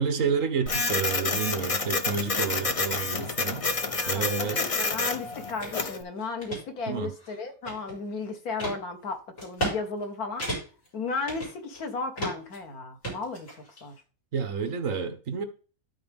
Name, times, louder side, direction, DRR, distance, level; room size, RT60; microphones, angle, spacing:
voice 1, 0.0-4.6 6.9-7.1 14.3-15.4, right 6 dB, 65° right, 1.4 m, -30 dB
Printer, 0.7-6.0, left 3 dB, 35° left, 0.6 m, -29 dB
voice 2, 3.8-10.5 10.9-14.0, left 4 dB, 90° left, 1.9 m, -35 dB
sound 1, 5.6-5.7 6.2-6.6 7.2-8.1 8.6-8.8 9.4-9.8 10.0-10.1 10.4-10.9 11.3-11.8 12.2-12.6 13.0-13.8, right 1 dB, 65° left, 4.5 m, -33 dB
12.0 x 4.4 x 3.5 m
omnidirectional pair, 1.5 m